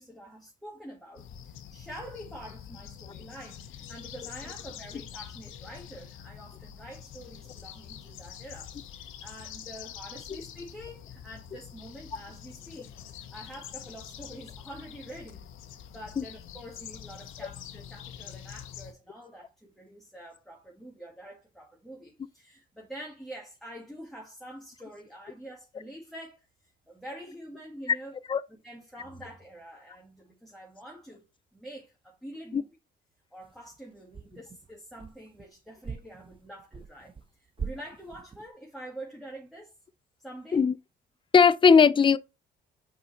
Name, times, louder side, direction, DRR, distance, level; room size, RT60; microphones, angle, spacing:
voice 1, 0.0-15.4 15.7-28.1 28.6-31.2 31.5-32.8 33.3-39.7 40.2-40.6, right 1 dB, ahead, 2.0 m, -46 dB
sound 1, 1.2-18.9, left 9 dB, 85° left, 0.9 m, -45 dB
sound 2, 33.4-33.8 34.1-35.5 35.8-37.3 37.6-38.5, right 5 dB, 25° right, 0.9 m, -41 dB
voice 2, 41.3-42.2, left 6 dB, 25° left, 0.4 m, -18 dB
5.7 x 4.9 x 4.2 m
cardioid pair, 90°, 20 cm